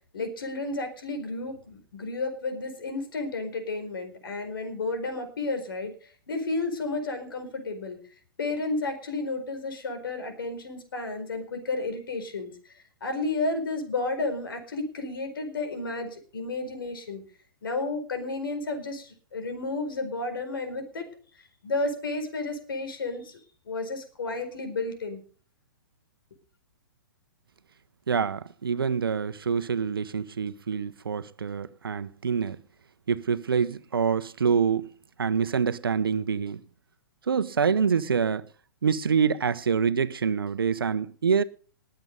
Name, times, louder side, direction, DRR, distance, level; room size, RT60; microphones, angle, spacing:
voice 1, 0.1-8.0 8.4-17.2 17.6-21.1 21.6-25.2, left 3 dB, 75° left, 4.6 m, -32 dB
voice 2, 28.1-32.6 33.1-34.9 35.2-36.6 37.3-38.4 38.8-41.4, right 6 dB, 80° right, 1.0 m, -26 dB
20.5 x 8.0 x 5.4 m
hypercardioid pair, 125°, 12 cm